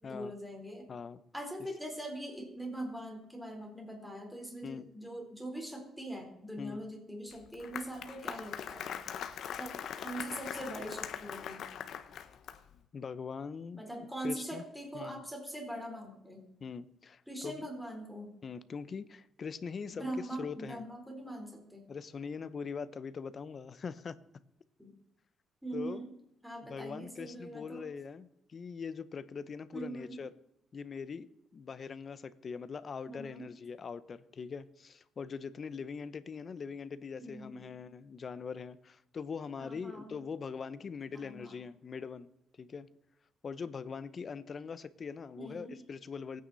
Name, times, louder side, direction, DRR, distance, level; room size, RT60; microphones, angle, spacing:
voice 1, 0.0-0.9 1.3-8.9 9.6-9.7 10.0-11.7 13.8-16.5 17.3-18.3 19.9-21.8 24.8-24.9 25.6-26.1 26.4-27.9 29.7-30.2 33.1-33.5 37.2-37.7 39.6-40.2 41.1-41.6 45.4-45.8, right 1 dB, ahead, 1 dB, 4.1 m, -42 dB
voice 2, 0.9-1.2 4.6-4.9 6.6-6.8 12.9-14.6 14.9-15.2 16.6-17.5 18.4-20.1 20.4-20.8 21.9-24.2 25.7-26.0 26.7-30.3 30.7-31.3 31.5-42.3 42.6-42.9 43.4-46.4, left 5 dB, 45° left, 14 dB, 1.0 m, -42 dB
Applause, 7.3-12.8, left 8 dB, 70° left, 1.2 m, -42 dB
24.0 x 9.5 x 4.2 m, 0.82 s
cardioid pair, 90°, 0 cm